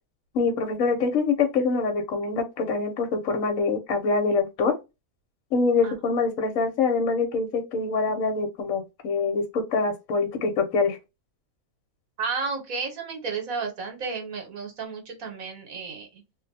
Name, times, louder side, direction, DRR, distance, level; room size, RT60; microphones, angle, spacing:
voice 1, 0.3-4.7 5.5-11.0, left 4 dB, 65° left, 1.1 m, -25 dB
voice 2, 12.2-16.2, right 4 dB, 70° right, 1.3 m, -32 dB
2.6 x 2.1 x 3.9 m
omnidirectional pair, 1.6 m